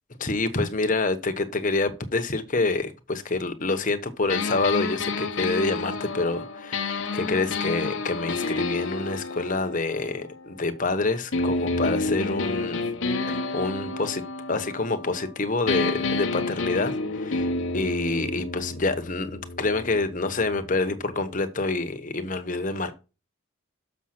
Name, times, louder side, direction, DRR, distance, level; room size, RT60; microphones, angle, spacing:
voice 1, 0.2-12.8 13.3-14.2 14.5-22.9, left 3 dB, 40° left, 1.0 m, -27 dB
sound 1, 4.3-10.8 11.3-15.3 15.7-21.4, left 3 dB, 65° left, 1.0 m, -30 dB
6.7 x 6.3 x 5.9 m
head